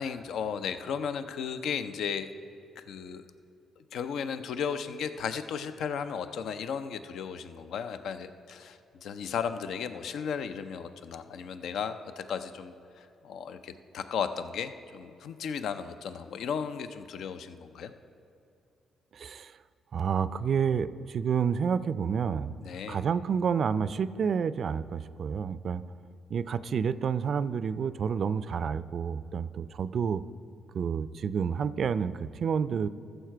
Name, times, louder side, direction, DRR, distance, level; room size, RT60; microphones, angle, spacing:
voice 1, 0.0-2.3 2.8-3.2 3.9-17.9 22.6-23.0, left 7 dB, 70° left, 10 dB, 0.5 m, -35 dB
voice 2, 19.1-19.5 19.9-22.5 22.9-25.8 26.3-30.2 30.7-32.9, right 7 dB, 60° right, 15 dB, 0.4 m, -29 dB
14.5 x 6.5 x 4.5 m, 2.7 s
hypercardioid pair, 50°, 0 cm